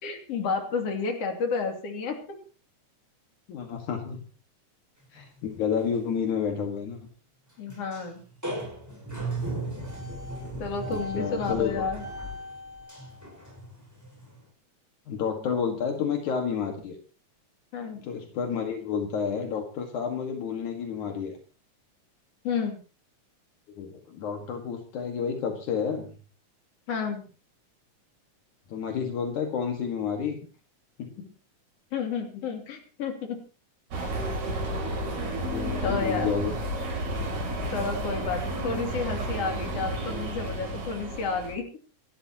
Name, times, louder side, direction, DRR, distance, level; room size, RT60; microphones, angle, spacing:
voice 1, 0.0-2.4 7.6-8.2 10.6-12.0 17.7-18.0 22.4-22.8 26.9-27.3 31.9-33.4 35.8-36.3 37.7-41.7, left 5 dB, 55° left, 3 dB, 3.7 m, -31 dB
voice 2, 3.5-4.2 5.1-7.0 10.9-11.9 15.1-17.0 18.0-21.4 23.8-26.1 28.7-30.4 31.0-31.3 35.5-36.6, left 7 dB, 75° left, 3 dB, 3.1 m, -30 dB
sound 1, 5.2-5.4 5.7-5.8 6.2-6.3 7.7-8.1 8.4-14.5, right 1 dB, 5° right, 5.4 m, -36 dB
sound 2, 33.9-41.6, right 1 dB, 65° right, 4.7 m, -31 dB
27.5 x 12.5 x 2.9 m, 0.36 s
omnidirectional pair, 3.5 m